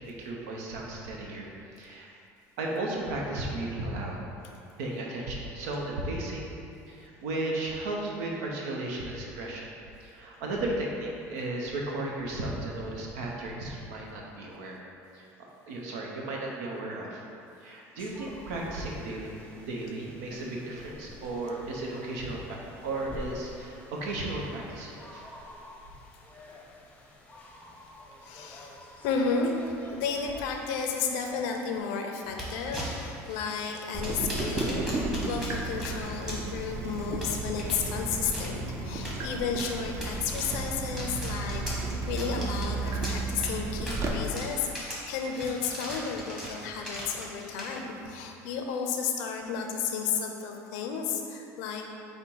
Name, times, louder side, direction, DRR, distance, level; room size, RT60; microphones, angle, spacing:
voice 1, 0.0-1.5 1.7-2.1 2.6-4.2 4.8-6.5 6.9-9.7 10.0-14.8 15.1-15.3 15.7-17.2 17.6-22.6 22.8-25.2, right 2 dB, 85° right, -2 dB, 0.7 m, -35 dB
sound 1, 17.9-31.8, left 1 dB, 15° left, 0.7 m, -48 dB
voice 2, 28.2-28.8 29.0-41.6 42.1-51.9, left 5 dB, 80° left, 2 dB, 0.5 m, -32 dB
sound 2, 32.3-48.0, equal, 5° right, 1.2 m, -41 dB
Water tap faucet / Drip, 33.9-44.1, right 3 dB, 40° right, 0.7 m, -33 dB
5.1 x 2.1 x 4.5 m, 2.5 s
supercardioid pair, 95°, 8 cm